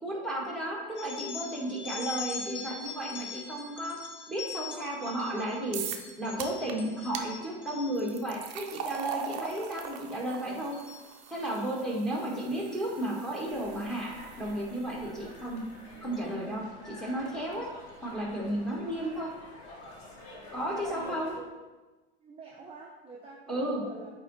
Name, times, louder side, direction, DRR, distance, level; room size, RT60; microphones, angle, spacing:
voice 1, 0.0-4.0 4.3-5.8 6.2-10.8 11.3-14.1 14.4-15.6 16.0-17.7 18.0-19.3 20.5-21.3 23.5-23.8, right 1 dB, ahead, -4 dB, 1.6 m, -33 dB
sound 1, 1.0-8.3 8.7-9.1 9.4-9.9 10.3-11.6 12.6-12.8 13.8-13.9 14.9-15.0 15.4-15.5 16.0-16.3, left 6 dB, 35° left, 0.7 m, -43 dB
sound 2, 5.7-6.1 6.4-6.7 7.1-7.3 8.0-15.1, right 7 dB, 50° right, 0.7 m, -41 dB
sound 3, 13.5-21.4, left 1 dB, 75° left, 1.5 m, -48 dB
voice 2, 20.7-21.1 22.2-24.1, right 3 dB, 20° right, -3 dB, 0.8 m, -46 dB
7.7 x 3.0 x 4.1 m, 1.2 s
hypercardioid pair, 105°, 32 cm